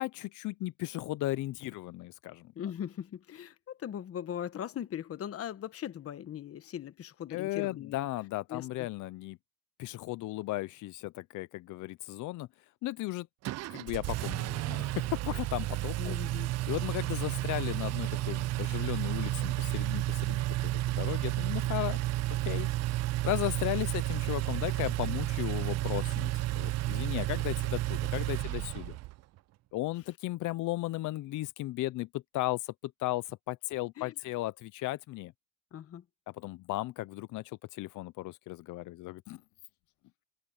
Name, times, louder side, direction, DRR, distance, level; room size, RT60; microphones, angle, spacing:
voice 1, 0.0-2.5 7.3-9.4 9.8-12.5 12.8-13.3 13.7-16.1 16.7-22.0 22.3-22.7 22.9-29.0 29.7-35.3 36.3-39.4, left 17 dB, 55° left, 0.6 m, -35 dB
voice 2, 2.5-8.1 8.5-8.7 16.0-16.5 34.0-34.1 35.7-36.0, left 10 dB, 40° left, 1.2 m, -39 dB
Engine, 13.4-29.2, right 17 dB, 50° right, 0.4 m, -32 dB
cardioid pair, 115°, 35 cm